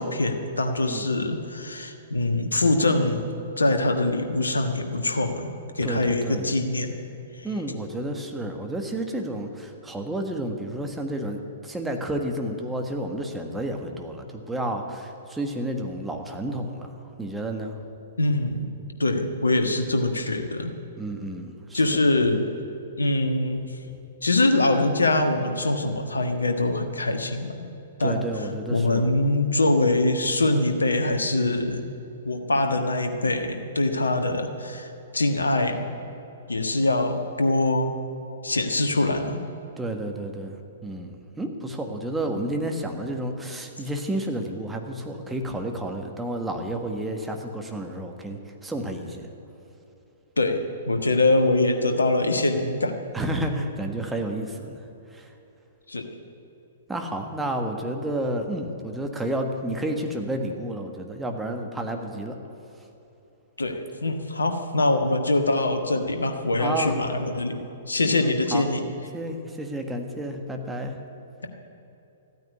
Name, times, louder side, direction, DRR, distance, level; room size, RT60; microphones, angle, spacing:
voice 1, 0.0-3.3 3.6-5.5 5.7-7.0 18.2-18.7 19.0-20.7 21.7-22.5 23.0-23.7 24.2-27.7 28.0-28.2 28.7-31.9 32.2-35.9 36.5-37.9 38.4-39.4 50.4-52.9 53.5-53.6 55.9-56.1 63.6-67.6 67.9-68.8, left 2 dB, 80° left, 5 dB, 1.4 m, -23 dB
voice 2, 5.8-6.5 7.4-16.9 17.2-17.7 21.0-22.0 28.0-29.0 39.8-41.1 41.4-49.3 53.1-54.8 55.1-55.3 56.9-62.3 66.6-67.0 68.2-68.6 69.1-71.0, right 1 dB, 5° right, 3 dB, 1.6 m, -31 dB
14.0 x 9.4 x 9.6 m, 3.0 s
figure-of-eight pair, 110°, 0 cm